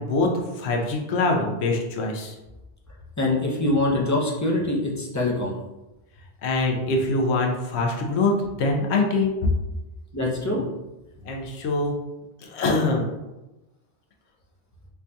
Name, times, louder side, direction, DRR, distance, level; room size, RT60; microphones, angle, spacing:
voice 1, 0.0-2.3 6.4-9.3 11.3-12.0 12.4-13.1, left 2 dB, 80° left, 1 dB, 0.9 m, -24 dB
voice 2, 3.2-5.6 10.1-10.7, left 2 dB, 25° left, -3 dB, 0.4 m, -24 dB
4.5 x 2.6 x 2.2 m, 1.0 s
omnidirectional pair, 1.1 m